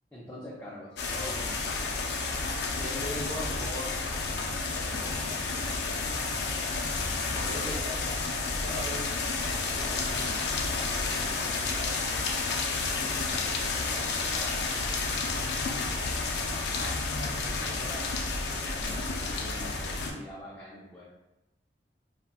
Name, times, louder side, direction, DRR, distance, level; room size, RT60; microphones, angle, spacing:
voice 1, 0.1-1.5 4.8-6.0 7.3-7.8 8.8-9.3 9.6-12.3 13.0-14.7 15.6-16.2 17.2-21.0, left 1 dB, 10° left, -9 dB, 0.5 m, -46 dB
sound 1, 1.0-20.1, left 3 dB, 70° left, 0.4 m, -31 dB
voice 2, 2.8-4.0 7.4-7.9 8.6-9.1, equal, 35° right, -5 dB, 0.7 m, -37 dB
4.0 x 2.1 x 2.2 m, 0.93 s
head